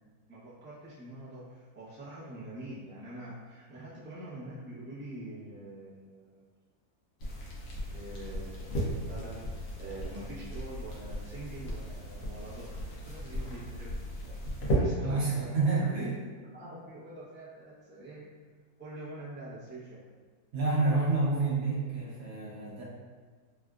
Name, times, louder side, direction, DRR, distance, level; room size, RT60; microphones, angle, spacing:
voice 1, 0.3-6.4 7.9-9.4 9.8-14.1 14.7-15.9 16.5-18.3 18.8-20.0, right 1 dB, 15° right, -10 dB, 0.4 m, -45 dB
sound 1, 7.2-14.8, right 1 dB, 65° left, 1.0 m, -36 dB
voice 2, 15.0-16.1 20.5-22.8, right 3 dB, 60° right, -7 dB, 1.1 m, -28 dB
3.4 x 2.4 x 2.3 m, 1.5 s
omnidirectional pair, 1.7 m